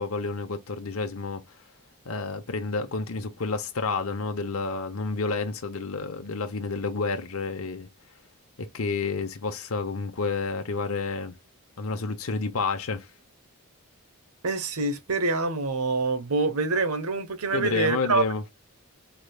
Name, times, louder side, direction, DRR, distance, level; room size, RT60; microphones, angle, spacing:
voice 1, 0.0-1.4 2.1-7.9 8.6-11.3 11.8-13.1 17.5-18.4, left 4 dB, 70° left, 0.8 m, -30 dB
voice 2, 14.4-18.2, right 3 dB, 85° right, 1.1 m, -26 dB
4.9 x 3.3 x 2.3 m
head